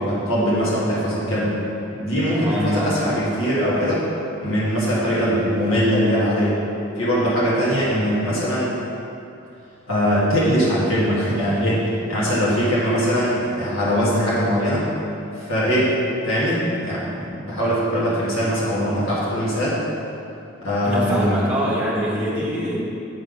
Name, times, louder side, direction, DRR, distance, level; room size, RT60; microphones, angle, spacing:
voice 1, 0.0-1.5 1.9-4.0 4.4-6.6 7.0-8.8 9.9-14.8 15.4-15.9 16.2-19.8 20.6-21.5, equal, 80° left, -8 dB, 1.7 m, -21 dB
voice 2, 2.3-3.0 20.8-22.8, equal, 10° right, -7 dB, 1.3 m, -24 dB
7.7 x 4.0 x 5.1 m, 2.7 s
head